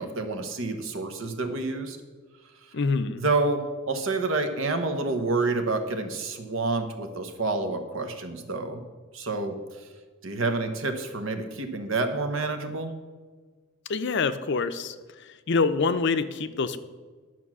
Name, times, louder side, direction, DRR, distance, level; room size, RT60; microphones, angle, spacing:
voice 1, 0.0-2.0 3.2-8.8 9.1-9.6 10.2-12.9, right 3 dB, 65° right, 7 dB, 1.1 m, -28 dB
voice 2, 2.7-3.2 13.9-14.9 15.5-16.8, left 4 dB, 55° left, 12 dB, 0.5 m, -25 dB
11.0 x 6.0 x 6.1 m, 1.4 s
head